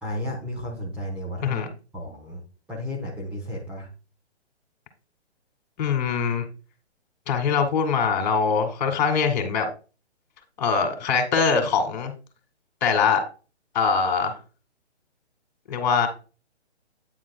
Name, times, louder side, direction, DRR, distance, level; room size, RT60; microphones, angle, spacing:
voice 1, 0.0-1.6 1.9-2.4 2.7-3.9, left 1 dB, 5° right, -4 dB, 0.8 m, -33 dB
voice 2, 5.8-6.4 7.3-9.7 10.6-12.1 12.8-13.2 13.7-14.3 15.7-16.1, left 5 dB, 40° left, 6 dB, 1.9 m, -22 dB
9.2 x 7.4 x 2.2 m, 0.34 s
hypercardioid pair, 145°, 34 cm